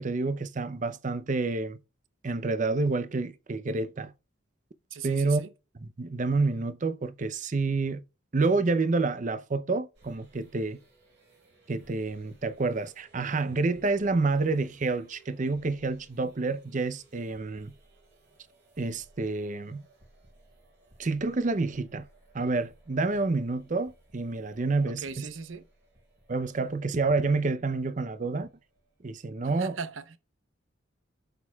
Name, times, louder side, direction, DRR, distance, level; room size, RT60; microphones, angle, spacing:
voice 1, 0.0-1.8 2.2-4.1 5.0-5.4 5.8-8.0 8.3-10.8 11.7-17.7 18.8-19.8 21.0-22.1 22.3-25.3 26.3-28.5 29.0-29.8, right 3 dB, 40° right, 0.6 m, -28 dB
voice 2, 4.9-5.5 24.9-25.7 29.6-30.2, right 5 dB, 85° right, 0.7 m, -38 dB
sound 1, 9.9-29.2, right 2 dB, 60° right, 5.0 m, -61 dB
11.5 x 6.4 x 2.3 m
head